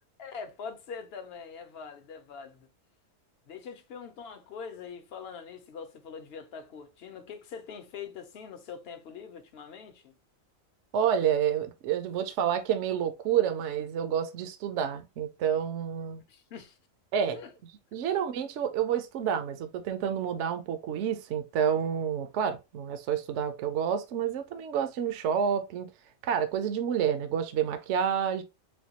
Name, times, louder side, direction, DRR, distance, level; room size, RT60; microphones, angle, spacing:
voice 1, 0.2-2.7 3.5-10.1 16.3-16.8 17.3-17.5, left 6 dB, 55° left, 0.8 m, -43 dB
voice 2, 10.9-16.2 17.1-17.4 17.9-25.9 26.2-28.4, right 8 dB, 65° right, 0.9 m, -29 dB
4.2 x 2.3 x 2.8 m
omnidirectional pair, 1.4 m